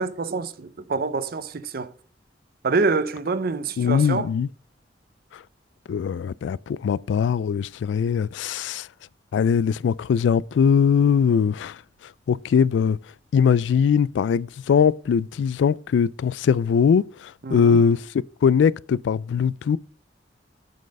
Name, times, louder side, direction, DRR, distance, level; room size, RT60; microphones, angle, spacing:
voice 1, 0.0-1.9 2.6-4.3 17.4-17.8, right 4 dB, 55° right, 0.6 m, -26 dB
voice 2, 3.8-4.5 5.3-5.4 5.9-8.9 9.3-11.8 12.3-13.0 13.3-18.1 18.4-19.8, left 7 dB, 90° left, 0.3 m, -21 dB
7.5 x 5.4 x 5.2 m
head